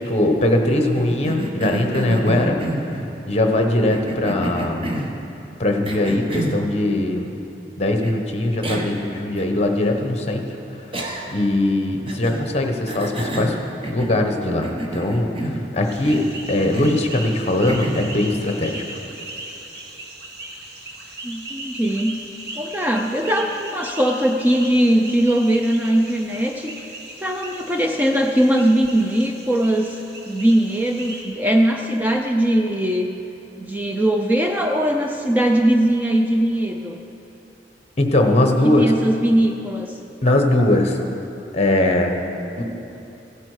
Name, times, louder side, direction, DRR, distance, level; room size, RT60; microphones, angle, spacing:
voice 1, 0.0-2.6 3.3-4.9 5.6-7.3 7.8-10.5 11.3-13.6 13.9-18.8 38.0-38.9 40.2-41.0 41.5-42.2 42.6-42.7, left 1 dB, 35° left, 4 dB, 1.0 m, -20 dB
Cough, 0.9-3.1 3.9-5.2 5.8-6.6 8.0-8.1 8.6-9.0 9.4-9.5 10.9-11.5 12.1-12.5 12.9-14.3 14.6-15.7 16.0-16.3 16.7-17.1 17.7-18.2, right 1 dB, 30° right, 1.0 m, -28 dB
sound 1, 15.8-31.2, right 2 dB, 60° right, 1.7 m, -38 dB
voice 2, 21.2-22.2 22.6-26.7 27.2-30.0 30.3-33.1 33.6-37.0 38.6-39.9, right 1 dB, 10° right, 2 dB, 0.5 m, -20 dB
16.5 x 8.4 x 4.9 m, 3.0 s
head